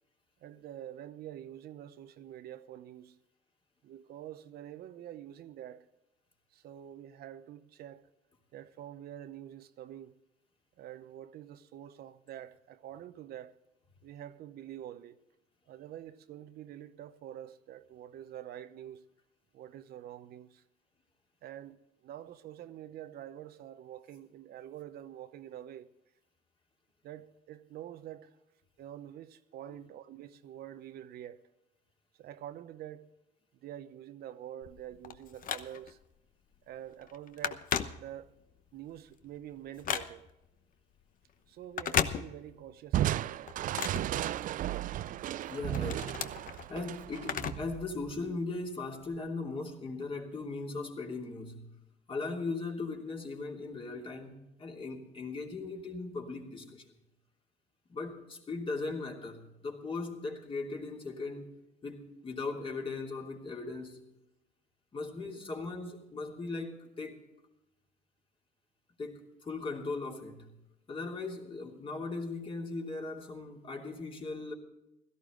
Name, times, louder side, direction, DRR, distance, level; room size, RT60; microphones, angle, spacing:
voice 1, 0.4-3.2 3.8-5.9 6.5-8.1 8.5-10.2 10.8-13.5 14.0-15.2 15.7-19.0 19.5-20.6 21.4-21.8 22.0-25.9 27.0-28.3 28.8-31.4 32.2-33.1 33.6-36.0 36.7-37.7 38.0-38.3 38.7-40.3 41.5-43.4 44.1-45.0, right 11 dB, 70° right, 0.8 m, -46 dB
Telephone, 34.6-36.1 36.5-36.7 37.0-38.5 38.9-40.5 41.6-42.7 43.1-44.8 45.3-47.8 48.1-48.2 49.1-49.2, left 8 dB, 55° left, 0.9 m, -36 dB
Crushing, 42.9-48.3, right 12 dB, 50° right, 0.4 m, -34 dB
voice 2, 45.5-46.1 46.7-51.6 52.1-57.0 57.9-61.5 61.8-64.0 64.9-67.2 69.0-70.4 70.9-74.5, left 3 dB, 30° left, 3.0 m, -38 dB
16.5 x 14.0 x 3.9 m
cardioid pair, 110°, 17 cm